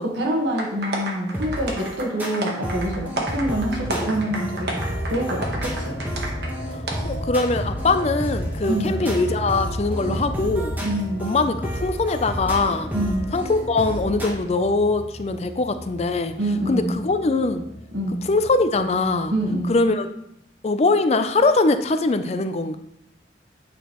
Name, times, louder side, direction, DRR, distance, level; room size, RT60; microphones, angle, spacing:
voice 1, 0.0-4.7 5.1-6.0 8.7-9.0 10.0-10.2 10.8-11.3 12.9-13.3 16.4-17.0 17.9-18.2 19.3-19.8, right 1 dB, 90° right, 0 dB, 1.4 m, -26 dB
sound 1, 0.6-6.5 6.9-7.0, right 2 dB, 65° right, 1.1 m, -31 dB
sound 2, 1.3-14.3, equal, 10° right, 1.0 m, -32 dB
sound 3, 3.8-19.9, equal, 65° left, 1.6 m, -35 dB
voice 2, 6.7-10.8 11.2-12.9 13.3-16.3 16.7-17.7 18.2-19.3 19.7-20.1 20.6-22.8, left 3 dB, 35° left, 10 dB, 0.4 m, -22 dB
8.5 x 5.0 x 3.0 m, 0.80 s
head